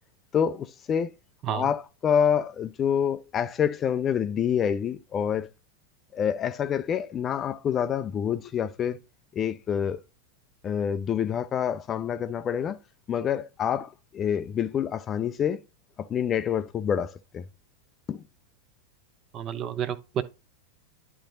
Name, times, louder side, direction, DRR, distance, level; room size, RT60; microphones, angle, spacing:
voice 1, 0.3-1.1 1.5-5.5 6.1-9.0 9.3-10.0 10.6-12.8 13.1-15.6 16.0-17.4 18.1-18.2, left 8 dB, 25° left, 0.4 m, -27 dB
voice 2, 19.3-20.2, right 9 dB, 30° right, 0.7 m, -30 dB
11.5 x 3.9 x 2.6 m
figure-of-eight pair, 90°, 0 cm